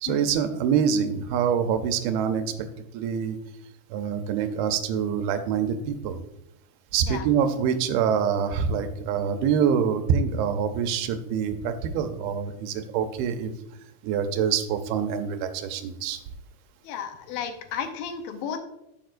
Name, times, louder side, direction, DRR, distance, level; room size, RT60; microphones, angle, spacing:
voice 1, 0.0-2.7 2.9-3.4 3.9-6.2 6.9-13.5 14.0-16.2, right 7 dB, 85° right, 8 dB, 2.6 m, -25 dB
voice 2, 16.8-18.6, left 7 dB, 80° left, 7 dB, 2.4 m, -33 dB
10.5 x 7.2 x 2.5 m, 0.84 s
omnidirectional pair, 4.3 m